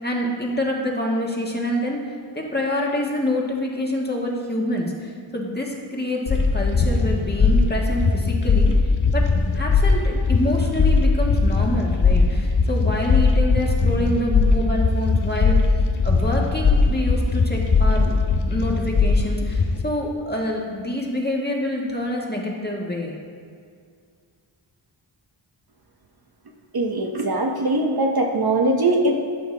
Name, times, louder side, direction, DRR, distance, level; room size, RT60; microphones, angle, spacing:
voice 1, 0.0-8.7 9.1-9.3 9.5-15.6 16.0-18.2 18.4-23.2, left 1 dB, 20° left, -2 dB, 1.6 m, -26 dB
sound 1, 6.3-19.8, left 4 dB, 40° left, 0.8 m, -19 dB
voice 2, 26.7-29.2, right 2 dB, 50° right, 1 dB, 1.0 m, -21 dB
13.5 x 5.7 x 3.3 m, 2.2 s
wide cardioid pair, 55°, 49 cm